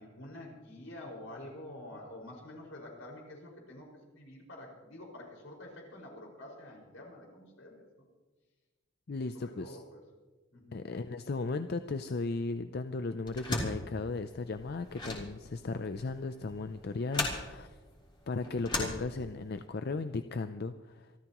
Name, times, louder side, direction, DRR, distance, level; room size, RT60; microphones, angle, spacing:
voice 1, 0.0-3.9 4.2-8.1 9.3-10.0 10.5-10.8, left 1 dB, 80° left, -2 dB, 5.4 m, -48 dB
voice 2, 9.1-9.8 10.7-17.8 18.3-21.1, left 3 dB, 50° left, 10 dB, 0.5 m, -36 dB
sound 1, 13.2-19.6, left 2 dB, 25° left, 3.2 m, -38 dB
27.0 x 13.5 x 3.0 m, 1.2 s
head